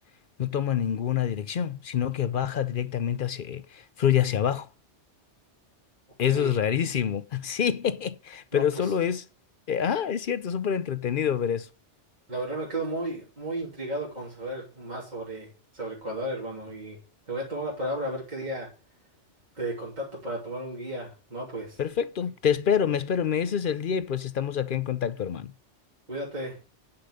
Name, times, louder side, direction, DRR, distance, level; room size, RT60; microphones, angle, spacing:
voice 1, 0.4-4.7 6.2-9.2 9.7-11.7 21.8-25.5, left 8 dB, 55° left, 0.7 m, -27 dB
voice 2, 8.5-8.9 12.3-17.0 17.3-18.7 19.5-21.8 26.1-26.6, right 1 dB, 35° right, 3.3 m, -34 dB
10.5 x 5.9 x 6.4 m
omnidirectional pair, 1.2 m